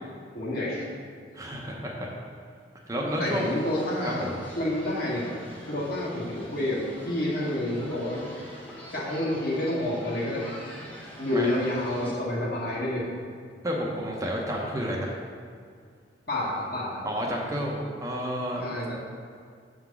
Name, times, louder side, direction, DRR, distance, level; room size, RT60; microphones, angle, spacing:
voice 1, 0.3-0.9 3.2-4.3 4.6-8.3 8.9-10.6 11.2-13.1 16.3-17.0 18.6-18.9, left 1 dB, 55° left, -5 dB, 1.6 m, -29 dB
voice 2, 1.3-2.1 2.9-3.5 4.0-4.4 11.3-11.5 13.6-15.2 17.0-18.9, equal, 20° right, -2 dB, 0.7 m, -31 dB
sound 1, 3.3-12.1, equal, 10° left, 1.1 m, -45 dB
7.0 x 3.8 x 5.9 m, 2.1 s
head